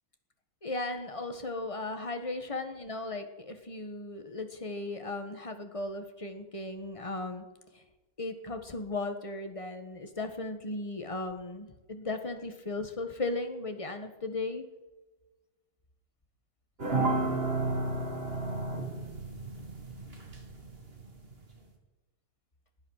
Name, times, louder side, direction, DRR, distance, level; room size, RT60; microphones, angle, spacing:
voice 1, 0.6-7.4 7.7-7.8 8.2-14.7, left 2 dB, 20° left, 6 dB, 1.1 m, -36 dB
sound 1, 16.8-21.4, right 2 dB, 30° right, 2.0 m, -32 dB
19.5 x 10.5 x 6.5 m, 1.1 s
omnidirectional pair, 2.4 m